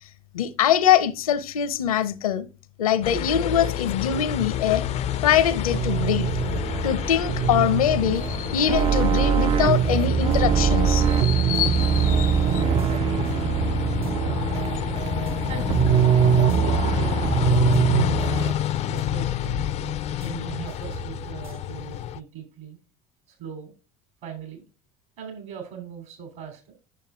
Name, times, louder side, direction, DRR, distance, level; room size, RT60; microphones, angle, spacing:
voice 1, 0.3-2.5 2.8-4.8 5.2-6.3 6.8-12.6, left 9 dB, 75° left, 0.7 m, -23 dB
sound 1, 3.0-22.2, left 11 dB, 40° left, 0.4 m, -29 dB
sound 2, 4.7-18.5, right 8 dB, 30° right, 0.4 m, -23 dB
sound 3, 9.8-21.7, right 7 dB, 80° right, 1.8 m, -42 dB
voice 2, 16.6-18.5 18.8-19.5 20.2-22.8 23.4-23.7 24.2-24.6 25.2-26.7, right 8 dB, 60° right, 3.1 m, -39 dB
9.0 x 6.5 x 2.3 m
figure-of-eight pair, 65°, 18 cm